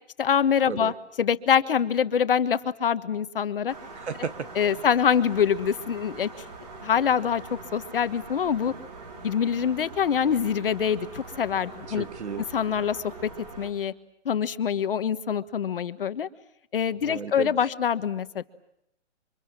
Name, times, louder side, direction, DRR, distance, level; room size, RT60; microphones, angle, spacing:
voice 1, 0.2-0.9 1.2-3.7 4.6-6.3 6.8-8.7 9.2-12.0 12.5-13.1 13.6-13.9 14.2-16.3 16.7-18.4, left 8 dB, 50° left, 12 dB, 1.4 m, -25 dB
sound 1, 3.7-13.7, right 3 dB, 35° right, 4.4 m, -43 dB
voice 2, 4.0-4.9 11.9-12.5 17.0-17.6, right 6 dB, 65° right, 12 dB, 2.1 m, -34 dB
29.0 x 25.0 x 7.5 m, 0.77 s
hypercardioid pair, 175°, 36 cm